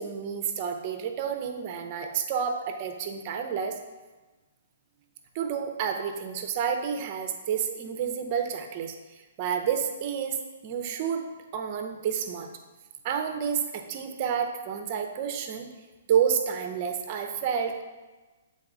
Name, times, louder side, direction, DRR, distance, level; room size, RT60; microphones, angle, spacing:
voice 1, 0.0-3.8 5.3-11.3 11.5-12.5 13.0-15.7 16.1-17.8, right 7 dB, 40° right, 5 dB, 0.8 m, -30 dB
7.8 x 4.1 x 3.7 m, 1.2 s
figure-of-eight pair, 125°, 0 cm